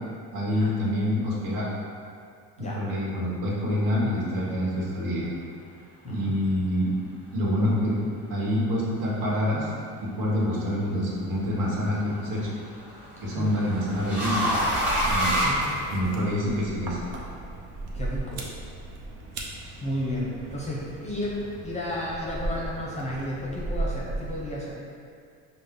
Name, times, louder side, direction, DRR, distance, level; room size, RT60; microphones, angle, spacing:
voice 1, 0.3-1.7 2.6-5.3 6.0-6.9 7.3-8.0 8.3-9.7 10.0-12.5 13.2-14.5 15.0-15.3 15.9-17.0, left 1 dB, 65° right, -5 dB, 1.3 m, -26 dB
voice 2, 6.0-6.4 13.3-13.6 15.4-16.0 17.9-18.4 19.8-24.7, left 1 dB, 20° left, -5 dB, 0.6 m, -33 dB
sound 1, 10.5-10.9 12.4-16.4, equal, 5° right, 0.9 m, -27 dB
sound 2, 14.3-24.7, right 2 dB, 80° right, 0.8 m, -36 dB
5.2 x 2.1 x 3.7 m, 2.4 s
cardioid pair, 125°, 36 cm